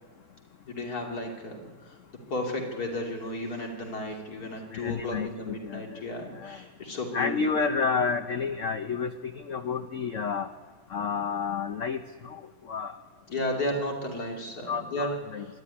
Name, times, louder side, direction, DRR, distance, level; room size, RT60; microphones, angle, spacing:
voice 1, 0.7-1.6 2.3-7.3 13.3-15.1, left 1 dB, 45° left, 0 dB, 3.3 m, -33 dB
voice 2, 4.7-6.0 6.3-6.6 7.1-10.5 10.9-12.4 12.7-12.9 14.7-15.5, left 5 dB, 65° left, 7 dB, 0.7 m, -30 dB
25.0 x 12.0 x 9.8 m, 1.4 s
omnidirectional pair, 2.3 m